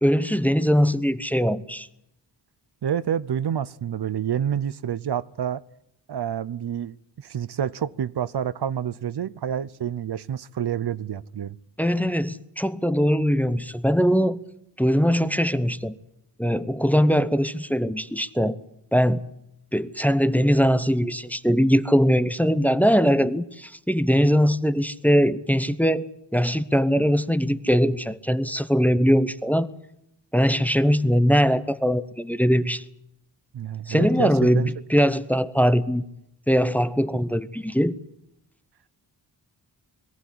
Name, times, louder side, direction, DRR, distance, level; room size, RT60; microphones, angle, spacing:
voice 1, 0.0-1.9 11.8-14.4 14.8-15.9 16.4-18.6 18.9-19.2 19.7-29.7 30.3-32.8 33.9-36.0 36.5-37.9, equal, 5° left, 0.9 m, -21 dB
voice 2, 2.8-5.6 6.1-11.6 33.5-34.7, right 9 dB, 65° right, 0.7 m, -28 dB
22.5 x 15.0 x 10.0 m
wide cardioid pair, 90°, 42 cm